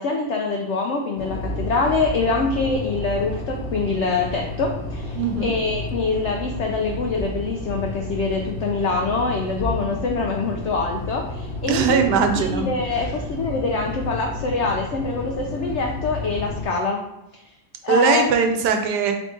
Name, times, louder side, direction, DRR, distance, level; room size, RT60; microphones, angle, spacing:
voice 1, 0.0-12.0 12.4-17.0 17.3-17.4 17.8-18.3, left 3 dB, 85° left, 1 dB, 0.6 m, -25 dB
sound 1, 1.2-16.6, left 2 dB, 50° left, 0.9 m, -31 dB
voice 2, 5.1-5.5 11.7-12.7 17.9-19.1, right 6 dB, 80° right, 5 dB, 1.2 m, -20 dB
3.7 x 3.5 x 3.7 m, 0.91 s
omnidirectional pair, 1.8 m